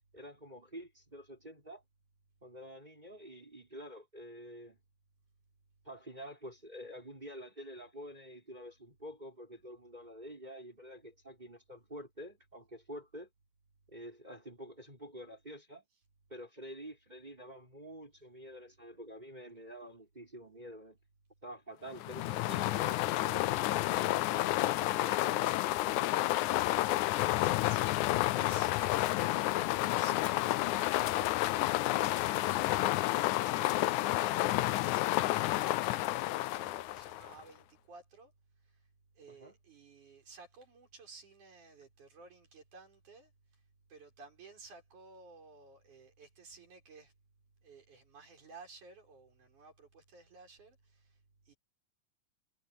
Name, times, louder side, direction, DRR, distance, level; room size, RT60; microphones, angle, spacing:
voice 1, 0.1-1.8 2.4-4.8 5.8-13.3 13.9-15.8 16.3-21.0 21.4-26.1 39.3-39.6, equal, 15° right, 6.0 m, -48 dB
sound 1, 22.0-37.4, left 16 dB, 90° left, 2.1 m, -30 dB
voice 2, 27.4-38.3 38.6-38.9 39.2-43.3 43.9-47.1 47.6-51.2 51.5-51.6, right 3 dB, 80° right, 7.8 m, -55 dB
omnidirectional pair, 3.4 m